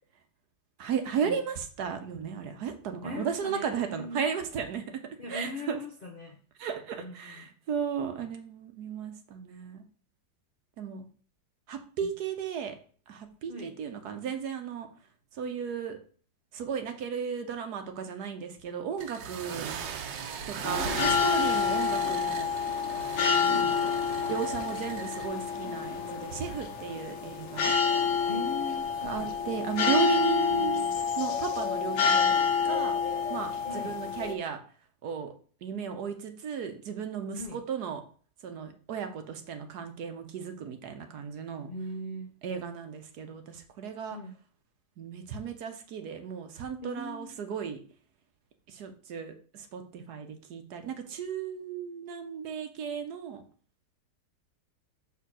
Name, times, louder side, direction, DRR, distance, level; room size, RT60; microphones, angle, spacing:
voice 1, 0.8-5.0 5.3-5.8 6.6-9.8 10.8-11.1 11.7-12.8 13.1-14.9 15.4-16.0 16.5-19.7 20.5-22.5 23.2-23.8 24.3-27.7 29.0-30.9 31.2-32.3 32.6-33.0 33.3-34.6 35.0-35.3 35.6-38.0 38.4-41.7 42.4-44.2 45.0-47.8 48.7-53.4, right 7 dB, 65° right, 7 dB, 1.3 m, -35 dB
voice 2, 3.0-4.2 5.2-6.4 7.0-7.5 12.0-12.1 13.5-13.7 20.8-21.3 23.4-23.8 28.3-29.3 33.6-33.9 37.4-37.6 41.7-42.4 44.1-44.3 46.8-47.4, left 1 dB, 50° left, 2 dB, 0.6 m, -40 dB
sound 1, 19.0-25.3, right 7 dB, 80° right, 1.5 m, -38 dB
sound 2, 20.6-34.3, left 6 dB, 80° left, 1.6 m, -28 dB
5.9 x 3.7 x 6.1 m, 0.44 s
omnidirectional pair, 2.0 m